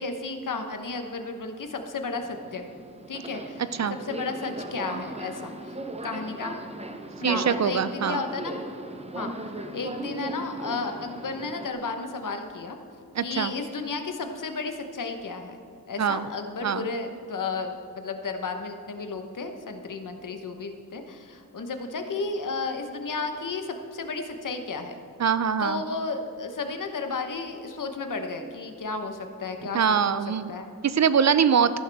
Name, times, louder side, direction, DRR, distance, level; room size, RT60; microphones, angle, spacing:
voice 1, 0.0-2.7 3.1-3.6 3.9-5.5 6.0-6.6 7.2-8.5 9.1-9.4 9.7-12.8 13.2-15.6 15.9-25.0 25.6-30.7, left 3 dB, 60° left, 6 dB, 1.1 m, -33 dB
Subway metro underground, 2.1-11.7, right 1 dB, 20° right, 0.8 m, -38 dB
voice 2, 7.2-8.2 13.1-13.5 16.0-16.3 16.6-16.9 25.2-25.8 29.7-30.5 30.8-31.7, right 7 dB, 50° right, 14 dB, 0.4 m, -23 dB
14.0 x 11.0 x 3.5 m, 2.4 s
wide cardioid pair, 120°, 35 cm